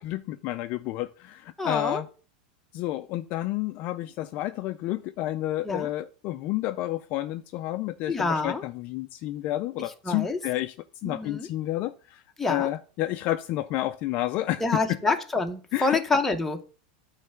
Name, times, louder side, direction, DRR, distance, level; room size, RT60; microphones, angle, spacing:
voice 1, 0.0-2.1 2.7-10.7 11.0-12.2 12.5-15.0 15.7-16.0, left 15 dB, 40° left, 0.3 m, -30 dB
voice 2, 1.6-2.0 5.6-5.9 8.1-8.6 10.1-10.4 11.0-11.5 12.4-12.7 14.6-16.6, left 3 dB, 5° left, 0.8 m, -27 dB
9.1 x 3.3 x 6.7 m
supercardioid pair, 155°, 4 cm